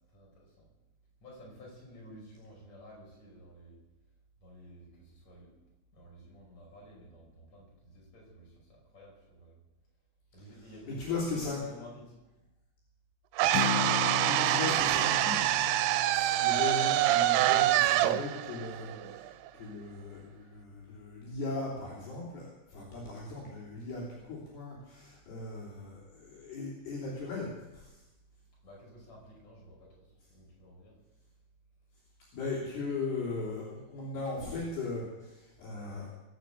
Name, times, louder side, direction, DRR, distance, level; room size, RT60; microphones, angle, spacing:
voice 1, 0.1-0.7 1.2-3.8 4.4-5.5 5.9-9.6 10.3-12.1 28.6-29.9 30.3-30.9, equal, 40° left, -3 dB, 6.5 m, -52 dB
voice 2, 10.9-11.6 14.2-15.3 16.1-19.3 19.5-27.9 32.3-36.1, left 3 dB, 70° left, -5 dB, 5.2 m, -38 dB
sound 1, 13.4-19.5, right 14 dB, 80° right, 2.5 m, -26 dB
Acoustic guitar, 13.5-17.8, left 10 dB, 85° left, 3.2 m, -38 dB
21.5 x 7.2 x 8.1 m, 0.99 s
omnidirectional pair, 4.8 m